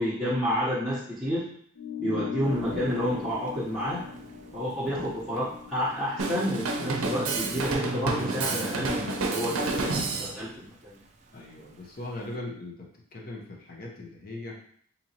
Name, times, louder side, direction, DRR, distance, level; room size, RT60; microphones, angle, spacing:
voice 1, 0.0-1.5 2.0-4.1 4.5-11.0, equal, ahead, -12 dB, 0.9 m, -30 dB
sound 1, 1.8-6.6, left 9 dB, 70° left, 0.4 m, -40 dB
voice 2, 2.0-2.4 6.7-7.1 11.3-14.6, left 2 dB, 45° left, -1 dB, 0.8 m, -40 dB
Thunder / Rain, 2.4-12.4, right 2 dB, 35° right, 0.4 m, -46 dB
Drum kit, 6.2-10.4, right 3 dB, 85° right, 0.6 m, -29 dB
4.2 x 2.9 x 2.8 m, 0.62 s
head